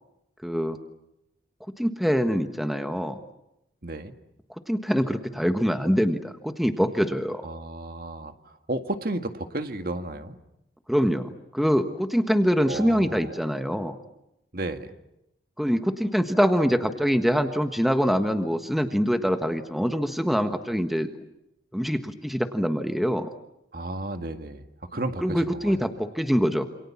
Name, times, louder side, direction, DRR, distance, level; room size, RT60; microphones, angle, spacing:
voice 1, 0.4-0.8 1.8-3.2 4.7-7.5 10.9-14.0 15.6-21.1 21.7-23.3 25.2-26.7, equal, ahead, 7 dB, 1.4 m, -24 dB
voice 2, 3.8-4.2 7.4-10.4 12.7-13.3 14.5-14.9 23.7-24.6 24.9-25.8, right 2 dB, 55° right, 7 dB, 1.9 m, -33 dB
28.0 x 28.0 x 7.3 m, 0.85 s
head